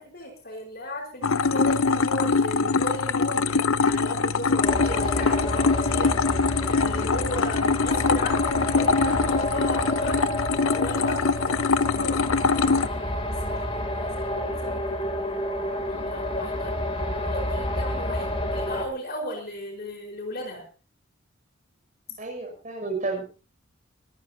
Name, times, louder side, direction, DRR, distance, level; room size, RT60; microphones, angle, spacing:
voice 1, 0.0-6.2 6.7-10.3 10.7-16.8 17.1-20.7 22.1-22.2, left 1 dB, 45° left, 2 dB, 4.7 m, -36 dB
sound 1, 1.2-12.9, left 4 dB, 80° left, 0.7 m, -23 dB
sound 2, 4.6-18.8, left 1 dB, 25° left, 3.0 m, -30 dB
voice 2, 22.2-23.2, right 3 dB, 35° right, 1 dB, 6.7 m, -31 dB
24.0 x 14.5 x 2.8 m, 0.34 s
head